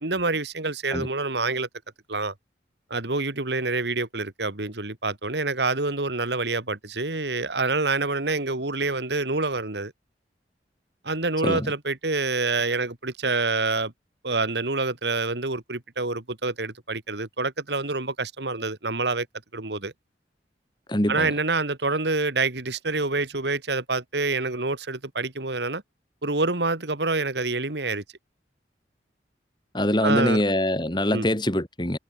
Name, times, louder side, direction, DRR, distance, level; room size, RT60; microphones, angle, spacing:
voice 1, 0.0-1.7 2.1-2.3 2.9-9.9 11.0-13.9 14.2-19.3 19.5-19.9 21.1-25.8 26.2-28.0 30.0-30.4 31.1-31.3, right 3 dB, 65° right, 2.3 m, -27 dB
voice 2, 20.9-21.3 29.7-32.0, left 1 dB, 25° left, 4.4 m, -24 dB
head